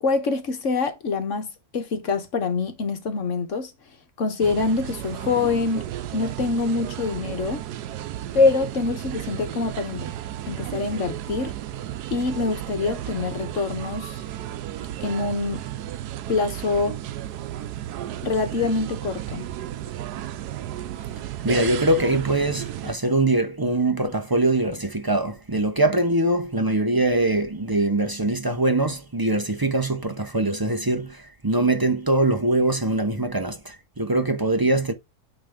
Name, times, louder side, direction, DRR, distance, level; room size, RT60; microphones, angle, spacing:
voice 1, 0.0-1.5 1.7-3.7 4.2-7.6 8.3-10.1 10.5-11.5 12.1-14.2 15.0-15.6 16.3-17.0 18.2-19.5, left 4 dB, 55° left, 1.4 m, -25 dB
sound 1, 4.4-22.9, right 12 dB, 90° right, 1.2 m, -33 dB
voice 2, 21.4-34.9, right 2 dB, 25° right, 0.4 m, -23 dB
8.9 x 3.4 x 3.6 m
omnidirectional pair, 1.7 m